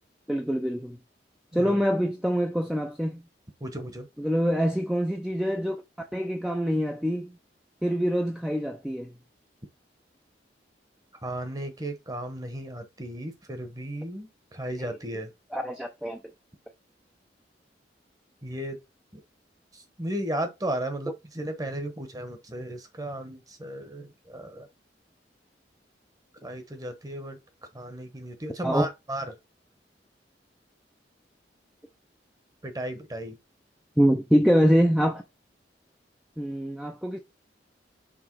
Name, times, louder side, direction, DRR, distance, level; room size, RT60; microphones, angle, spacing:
voice 1, 0.3-1.0 1.5-3.2 4.2-7.3 7.8-9.1 15.5-16.2 28.6-28.9 34.0-35.2 36.4-37.2, equal, 5° right, 0.5 m, -25 dB
voice 2, 1.5-1.8 3.6-4.1 11.2-15.3 18.4-18.8 19.7-24.7 26.4-27.4 27.7-29.4 32.6-33.4, right 1 dB, 20° right, 1.1 m, -35 dB
6.1 x 3.4 x 4.6 m
head